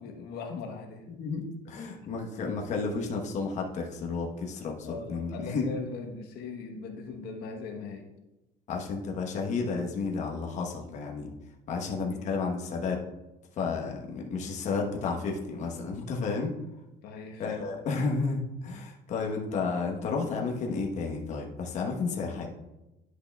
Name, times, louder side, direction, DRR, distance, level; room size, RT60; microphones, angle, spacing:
voice 1, 0.0-1.1 4.8-8.1 12.1-12.3 17.0-17.7, left 4 dB, 75° left, 3 dB, 1.0 m, -40 dB
voice 2, 1.1-5.6 8.7-11.3 11.7-13.0 13.6-16.5 17.4-22.5, left 4 dB, 45° left, 0 dB, 1.0 m, -32 dB
10.5 x 6.5 x 2.3 m, 0.99 s
cardioid pair, 160°, 17 cm